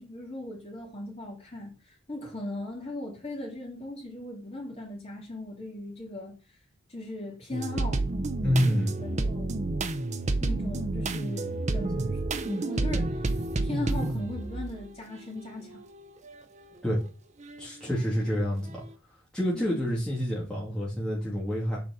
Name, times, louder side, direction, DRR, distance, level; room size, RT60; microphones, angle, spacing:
voice 1, 0.0-6.3 6.9-8.0 9.0-9.6 10.4-13.3 13.6-15.8 19.5-19.9, left 1 dB, 30° left, 3.3 m, -38 dB
sound 1, 7.5-14.9 15.4-16.3 16.9-17.1 17.4-18.4, right 2 dB, 35° right, 0.7 m, -30 dB
voice 2, 8.4-9.0 16.8-17.0 17.6-18.8 19.3-21.8, equal, 5° left, 2.3 m, -28 dB
6.9 x 5.1 x 6.3 m
head